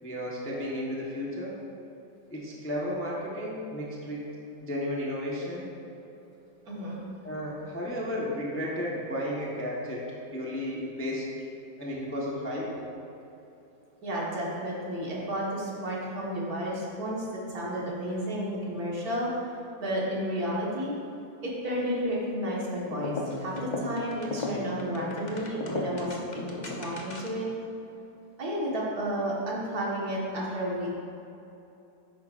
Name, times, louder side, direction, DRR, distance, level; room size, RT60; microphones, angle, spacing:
voice 1, 0.0-1.6 2.3-4.3 4.6-5.7 7.2-10.0 10.3-11.3 11.8-12.9, left 1 dB, 10° left, -5 dB, 0.8 m, -33 dB
voice 2, 6.7-7.0 14.0-19.3 19.8-20.9 21.4-27.5 28.4-30.9, equal, 60° right, -5 dB, 2.0 m, -32 dB
sound 1, 22.9-27.5, left 2 dB, 40° left, 0.6 m, -36 dB
10.5 x 8.5 x 2.5 m, 2.8 s
omnidirectional pair, 1.9 m